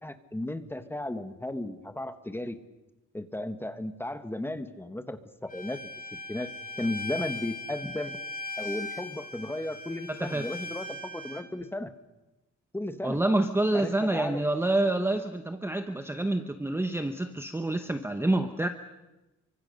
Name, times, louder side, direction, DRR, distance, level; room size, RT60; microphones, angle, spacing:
voice 1, 0.0-2.6 3.1-5.8 6.3-6.5 6.8-8.2 8.6-11.9 12.7-13.2 13.7-14.4, left 1 dB, 5° left, 9 dB, 1.3 m, -35 dB
Bowed string instrument, 5.5-11.4, left 2 dB, 30° left, 2.9 m, -39 dB
voice 2, 13.0-18.7, right 2 dB, 10° right, 8 dB, 0.9 m, -27 dB
27.5 x 24.5 x 6.6 m, 1.0 s
wide cardioid pair, 160°, 30 cm